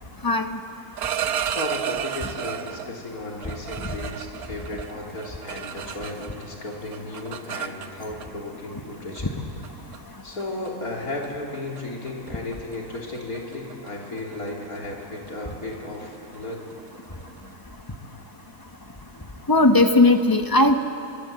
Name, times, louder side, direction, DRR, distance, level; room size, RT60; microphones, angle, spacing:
voice 1, 0.2-0.6 3.8-4.0 19.5-20.7, left 2 dB, 15° left, 6 dB, 1.1 m, -18 dB
sound 1, 0.8-2.9 3.4-6.5 6.7-8.3 9.2-9.3 9.6-10.0 10.4-10.7 11.0-11.3 11.5-11.8 12.1-17.4, right 9 dB, 90° right, 1.4 m, -33 dB
voice 2, 1.4-9.3 10.2-16.6, left 2 dB, 80° left, -1 dB, 3.9 m, -34 dB
26.0 x 24.0 x 7.7 m, 2.6 s
omnidirectional pair, 1.5 m